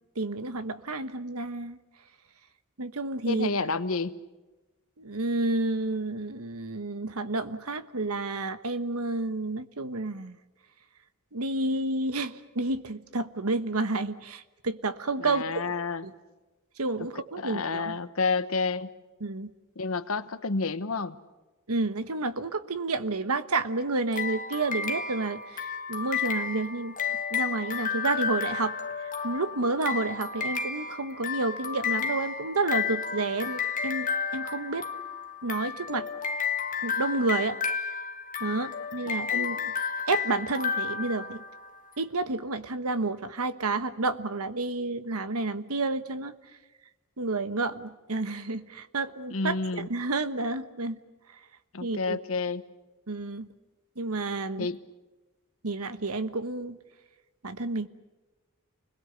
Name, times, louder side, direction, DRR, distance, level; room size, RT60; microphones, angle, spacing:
voice 1, 0.1-1.8 2.8-3.5 5.0-10.4 11.3-15.7 16.0-16.1 16.8-18.0 19.2-19.5 21.7-27.0 27.3-34.9 35.4-36.1 36.8-37.6 38.4-39.7 40.1-41.4 42.0-46.3 47.2-51.0 51.8-52.2 53.1-53.5 54.0-54.7 55.6-56.8 57.4-57.9, right 3 dB, 90° right, 12 dB, 1.3 m, -30 dB
voice 2, 3.3-4.2 15.2-16.0 17.0-17.1 17.4-18.9 19.8-21.2 39.3-39.5 49.3-49.9 51.7-52.6 54.6-54.8, left 4 dB, 70° left, 12 dB, 1.1 m, -30 dB
sound 1, 24.1-41.8, left 6 dB, 40° left, 1.5 m, -32 dB
29.5 x 21.5 x 6.9 m, 1.1 s
head